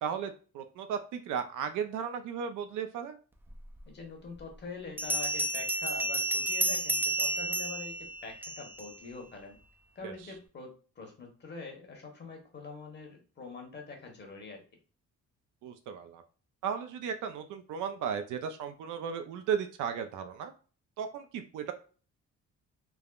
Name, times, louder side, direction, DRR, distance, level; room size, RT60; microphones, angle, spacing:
voice 1, 0.0-3.2 10.0-10.1 15.6-16.2 16.6-20.5 21.0-21.7, right 7 dB, 80° right, 7 dB, 0.5 m, -35 dB
Bell, 3.8-3.9 5.0-8.9, right 1 dB, 5° right, 0.4 m, -31 dB
voice 2, 3.9-9.6 9.9-10.7 11.0-14.6, left 4 dB, 35° left, 2 dB, 1.0 m, -44 dB
3.4 x 2.1 x 2.3 m, 0.38 s
cardioid pair, 90°, 30 cm